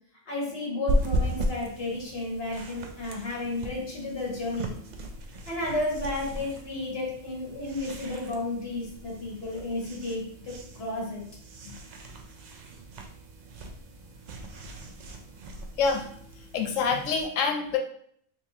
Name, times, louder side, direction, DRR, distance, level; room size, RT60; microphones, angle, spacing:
voice 1, 0.3-4.7 5.4-11.2, left 2 dB, 55° left, -3 dB, 1.5 m, -32 dB
sound 1, 0.9-17.2, equal, 70° right, 0.4 m, -36 dB
voice 2, 15.8-16.1 16.5-17.8, left 5 dB, 90° left, 4 dB, 1.0 m, -26 dB
3.6 x 3.0 x 2.7 m, 0.64 s
omnidirectional pair, 1.3 m